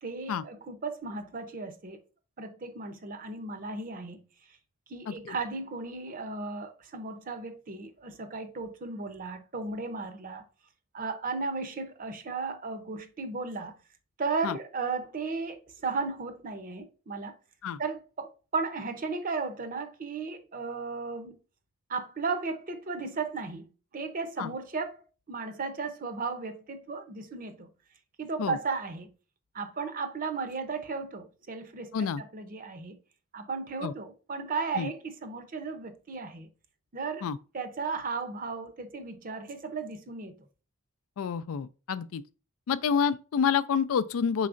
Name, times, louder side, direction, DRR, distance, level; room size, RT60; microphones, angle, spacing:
voice 1, 0.0-2.0 2.4-4.2 4.9-10.4 10.9-13.7 14.2-17.3 17.8-21.3 21.9-27.7 28.2-29.1 29.5-33.0 33.3-36.5 36.9-37.3 37.5-40.4, right 4 dB, 40° right, 0.6 m, -35 dB
voice 2, 41.2-42.2 42.7-44.5, left 6 dB, 70° left, 0.4 m, -28 dB
4.7 x 4.2 x 2.5 m
head